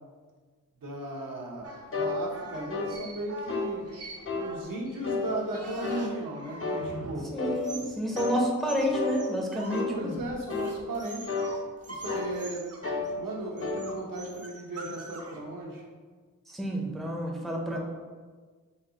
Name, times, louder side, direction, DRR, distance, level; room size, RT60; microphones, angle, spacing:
voice 1, 0.8-3.9 4.3-7.3 9.9-11.3 11.9-12.7 13.2-15.8 17.7-17.8, right 1 dB, 80° right, -3 dB, 0.9 m, -36 dB
sound 1, 1.6-7.3 7.6-9.8 10.1-11.6 11.8-13.1 13.6-15.4, right 2 dB, 50° right, 0.6 m, -43 dB
sound 2, 1.9-2.2 2.7-2.9 3.5-3.7 4.2-4.5 5.0-5.3 5.8-6.1 6.6-6.9 7.4-7.6 8.1-8.4 8.9-9.2 9.7-9.9 10.5-10.8 11.3-11.5 12.0-12.3 12.8-13.1 13.6-13.8, left 4 dB, 40° left, 0.6 m, -31 dB
voice 2, 7.3-10.2 16.5-17.8, equal, ahead, -1 dB, 0.6 m, -29 dB
4.2 x 2.4 x 3.9 m, 1.5 s
wide cardioid pair, 85°, 33 cm